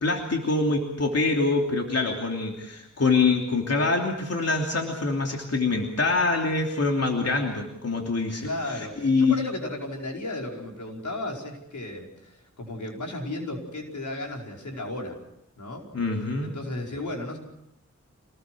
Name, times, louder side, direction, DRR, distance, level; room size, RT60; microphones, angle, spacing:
voice 1, 0.0-9.3 15.9-16.5, left 3 dB, 55° left, 1 dB, 3.1 m, -25 dB
voice 2, 8.4-15.1 15.6-15.9 16.4-17.4, left 2 dB, 85° left, 0 dB, 5.2 m, -34 dB
26.5 x 20.0 x 6.2 m, 0.82 s
wide cardioid pair, 75°, 29 cm